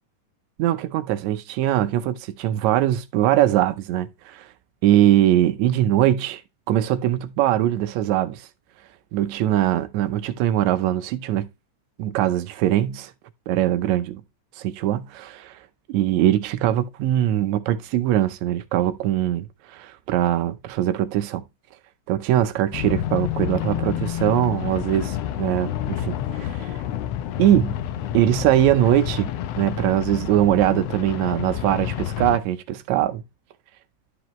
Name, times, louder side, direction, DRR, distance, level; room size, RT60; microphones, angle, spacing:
voice 1, 0.6-4.5 4.8-6.4 6.7-8.5 9.1-11.5 12.0-13.1 13.5-14.2 14.6-15.6 15.9-21.4 22.1-26.8 27.4-27.7 28.1-29.3 29.6-33.2, right 12 dB, 75° right, 1.8 m, -21 dB
sound 1, 22.7-32.4, left 11 dB, 80° left, 1.4 m, -29 dB
12.0 x 4.9 x 3.0 m
omnidirectional pair, 3.6 m